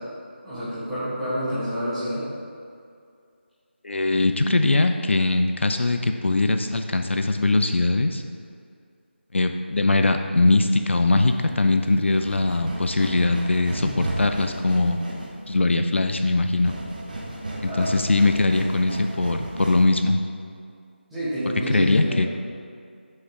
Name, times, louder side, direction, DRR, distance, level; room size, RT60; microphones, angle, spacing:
voice 1, 0.4-2.2 13.8-14.0 17.6-17.9 21.1-22.2, equal, ahead, -17 dB, 1.3 m, -28 dB
voice 2, 3.8-8.2 9.3-15.0 15.5-16.7 17.6-20.2 21.7-22.3, left 2 dB, 80° left, 6 dB, 0.4 m, -21 dB
sound 1, 11.1-20.0, right 1 dB, 45° right, 1.0 m, -36 dB
5.7 x 5.4 x 3.5 m, 2.3 s
figure-of-eight pair, 170°, 6 cm